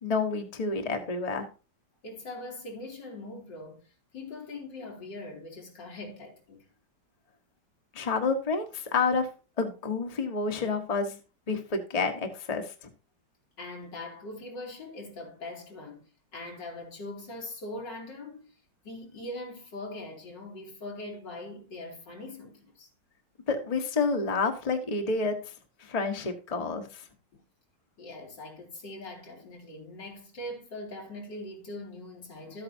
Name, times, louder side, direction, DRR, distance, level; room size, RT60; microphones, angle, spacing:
voice 1, 0.0-1.4 7.9-9.3 9.6-11.2 11.5-12.7 23.5-25.4 25.8-27.0, left 4 dB, 25° left, 1.2 m, -29 dB
voice 2, 2.0-6.7 13.6-16.0 16.3-18.6 18.8-22.9 27.3-27.4 28.0-32.6, left 2 dB, 80° left, 3.2 m, -41 dB
13.0 x 8.8 x 2.8 m
omnidirectional pair, 1.9 m